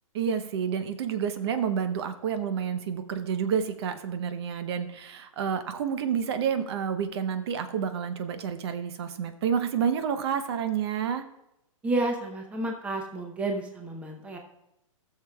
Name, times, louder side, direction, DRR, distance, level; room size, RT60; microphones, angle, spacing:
voice 1, 0.1-11.2, right 7 dB, 50° right, 10 dB, 0.9 m, -29 dB
voice 2, 11.8-14.4, right 2 dB, 5° right, 2 dB, 0.8 m, -30 dB
17.5 x 6.7 x 2.3 m, 0.86 s
hypercardioid pair, 150°, 17 cm